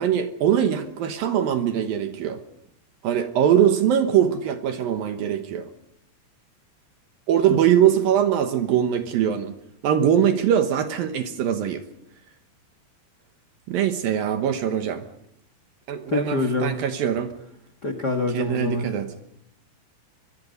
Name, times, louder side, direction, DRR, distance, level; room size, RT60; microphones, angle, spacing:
voice 1, 0.0-2.4 3.0-5.7 7.3-9.6 9.8-11.8 13.7-15.1 15.9-17.3 18.3-19.1, right 9 dB, 65° right, 7 dB, 2.5 m, -22 dB
voice 2, 16.1-16.7 17.8-18.8, left 2 dB, 55° left, 8 dB, 1.1 m, -25 dB
24.0 x 23.0 x 5.4 m, 0.76 s
omnidirectional pair, 5.1 m